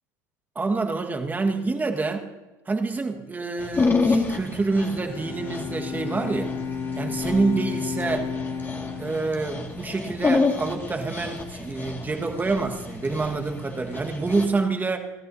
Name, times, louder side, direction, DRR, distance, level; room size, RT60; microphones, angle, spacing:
voice 1, 0.5-2.3 2.7-6.5 6.9-8.3 9.0-15.0, right 3 dB, 20° right, 4 dB, 1.6 m, -27 dB
Dog, 3.6-14.5, left 3 dB, 20° left, 2.1 m, -29 dB
Bowed string instrument, 4.7-10.1, left 5 dB, 40° left, 4.3 m, -33 dB
28.0 x 13.5 x 2.7 m, 1.2 s
hypercardioid pair, 85°, 10 cm